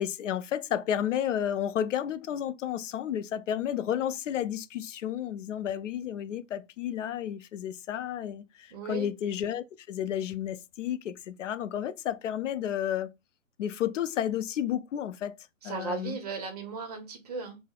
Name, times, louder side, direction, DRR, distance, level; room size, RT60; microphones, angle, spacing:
voice 1, 0.0-13.1 13.6-15.4 15.6-16.2, left 10 dB, 65° left, 0.5 m, -32 dB
voice 2, 8.7-9.1 15.6-17.6, right 4 dB, 30° right, 0.7 m, -36 dB
4.6 x 2.0 x 2.3 m
hypercardioid pair, 150°, 41 cm